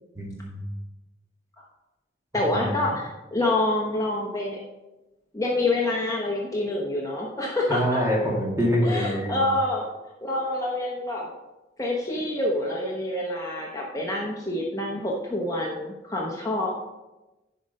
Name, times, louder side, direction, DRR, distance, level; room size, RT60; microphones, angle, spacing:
voice 1, 0.1-0.7 2.5-2.8 7.7-9.4, equal, 15° right, -2 dB, 2.3 m, -25 dB
voice 2, 2.3-4.6 5.3-8.0 8.8-9.9 10.2-11.3 11.8-16.8, left 1 dB, 20° left, -2 dB, 1.0 m, -27 dB
11.0 x 5.1 x 5.4 m, 1.1 s
head